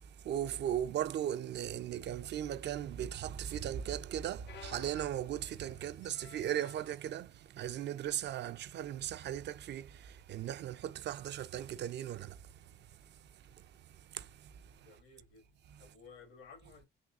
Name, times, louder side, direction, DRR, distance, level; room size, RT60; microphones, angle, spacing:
voice 1, 0.2-12.4 14.1-14.5 15.7-15.8, right 11 dB, 60° right, 0.4 m, -37 dB
sound 1, 4.5-6.9 7.7-7.9 8.3-8.4 9.3-9.5 11.1-11.2, left 7 dB, 60° left, 0.6 m, -55 dB
voice 2, 14.7-16.9, left 5 dB, 90° left, 1.7 m, -56 dB
3.6 x 2.7 x 2.5 m
cardioid pair, 90°, 20 cm